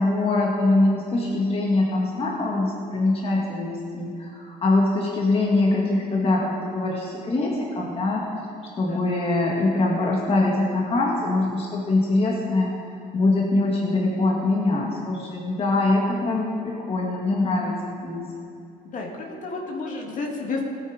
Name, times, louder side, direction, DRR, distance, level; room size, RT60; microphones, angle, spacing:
voice 1, 0.0-8.3 8.8-12.7 13.1-17.7 18.0-18.3, left 2 dB, 35° left, -2 dB, 1.8 m, -23 dB
voice 2, 18.9-20.7, left 3 dB, 50° left, 0 dB, 2.2 m, -31 dB
16.5 x 8.9 x 4.9 m, 2.6 s
cardioid pair, 110°, 17 cm